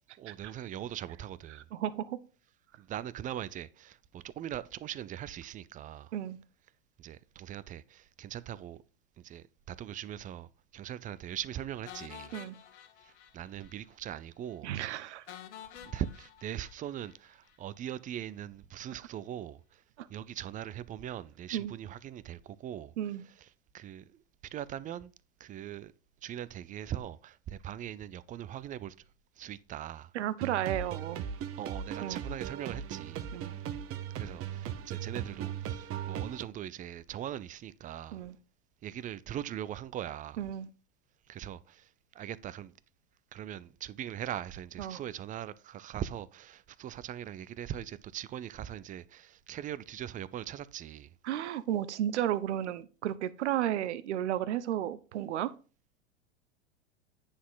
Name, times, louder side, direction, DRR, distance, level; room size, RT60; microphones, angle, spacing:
voice 1, 0.2-1.6 2.8-6.1 7.0-8.8 9.2-12.4 13.0-14.7 15.0-15.1 15.8-19.8 20.1-22.9 23.2-23.5 23.7-24.2 24.5-25.1 25.4-25.9 26.2-28.9 29.4-30.1 31.6-33.3 34.1-38.2 38.8-40.4 41.3-42.7 43.3-51.1, right 11 dB, 25° right, 0.5 m, -41 dB
voice 2, 1.6-2.2 6.1-6.4 12.3-12.6 14.6-15.2 20.0-20.1 21.5-21.7 23.0-23.2 30.1-31.3 32.0-32.2 33.3-33.5 38.1-38.4 40.4-40.7 44.8-45.0 51.2-55.5, right 11 dB, 80° right, 0.8 m, -33 dB
sound 1, 11.9-13.8 14.0-14.2 14.5-14.6 15.3-17.6, left 10 dB, 75° left, 1.5 m, -50 dB
sound 2, 30.4-36.4, right 9 dB, 40° right, 1.0 m, -38 dB
9.4 x 6.3 x 3.9 m
hypercardioid pair, 105°, 35 cm